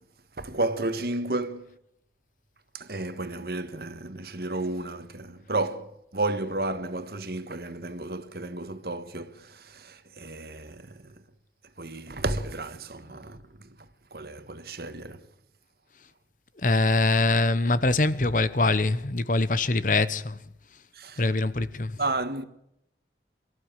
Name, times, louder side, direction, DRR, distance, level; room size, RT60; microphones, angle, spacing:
voice 1, 0.4-1.8 2.7-11.2 11.8-13.8 14.1-15.3 20.9-21.2 22.0-22.4, right 2 dB, 60° right, 1.6 m, -32 dB
voice 2, 16.6-20.4 21.2-22.0, left 2 dB, 45° left, 1.0 m, -23 dB
24.0 x 14.5 x 8.9 m
head